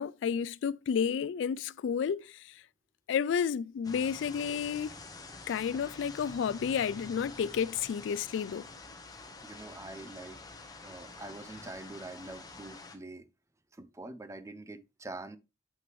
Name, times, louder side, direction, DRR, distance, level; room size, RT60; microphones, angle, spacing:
voice 1, 0.0-2.6 3.1-4.9 5.5-8.7, left 7 dB, 70° left, 0.3 m, -31 dB
sound 1, 3.8-13.0, left 3 dB, 20° left, 1.0 m, -48 dB
voice 2, 9.4-10.4 10.8-13.3 13.8-15.4, right 2 dB, 15° right, 0.6 m, -45 dB
7.8 x 6.0 x 3.0 m
head